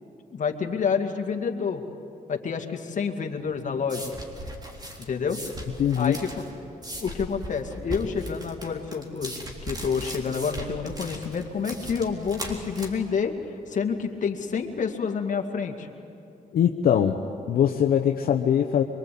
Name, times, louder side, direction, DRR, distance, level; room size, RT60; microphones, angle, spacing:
voice 1, 0.3-1.8 2.3-4.1 5.1-5.4 6.0-6.4 7.0-9.3 9.6-13.3 13.7-15.9, left 6 dB, 55° left, 4 dB, 2.2 m, -28 dB
sound 1, 3.4-14.7, right 1 dB, 25° right, 3.6 m, -39 dB
voice 2, 5.8-6.2 16.5-17.2 17.5-18.8, left 9 dB, 80° left, 3 dB, 1.0 m, -21 dB
24.0 x 23.5 x 8.6 m, 2.9 s
cardioid pair, 85°, 15 cm